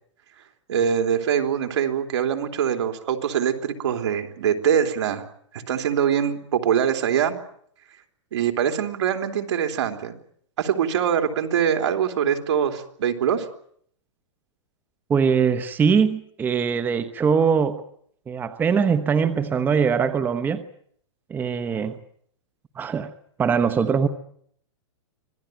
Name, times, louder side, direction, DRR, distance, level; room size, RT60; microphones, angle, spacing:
voice 1, 0.7-5.3 5.7-7.4 8.3-10.2 10.6-13.5, right 8 dB, 70° right, 6 dB, 3.5 m, -23 dB
voice 2, 15.1-17.8 18.3-20.6 21.3-22.0 22.8-23.1 23.4-24.1, right 6 dB, 10° right, 11 dB, 1.0 m, -22 dB
25.5 x 18.0 x 9.3 m, 0.66 s
hypercardioid pair, 155°, 15 cm